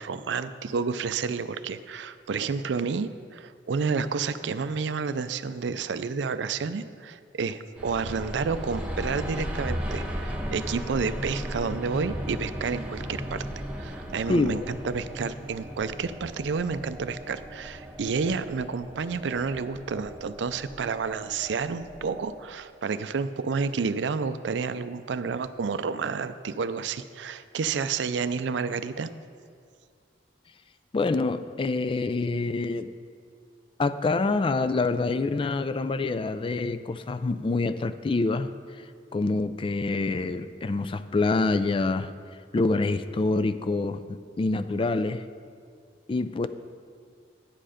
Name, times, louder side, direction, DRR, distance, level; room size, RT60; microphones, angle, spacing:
voice 1, 0.0-13.4 13.8-29.1, right 5 dB, 75° right, 12 dB, 0.4 m, -30 dB
sound 1, 7.8-22.4, equal, 5° right, 1.0 m, -36 dB
voice 2, 14.3-14.7 30.9-32.9 33.8-38.5 39.1-42.1 42.5-44.0 44.4-45.3 46.1-46.5, left 3 dB, 30° left, 12 dB, 0.3 m, -26 dB
10.5 x 7.7 x 5.0 m, 2.1 s
head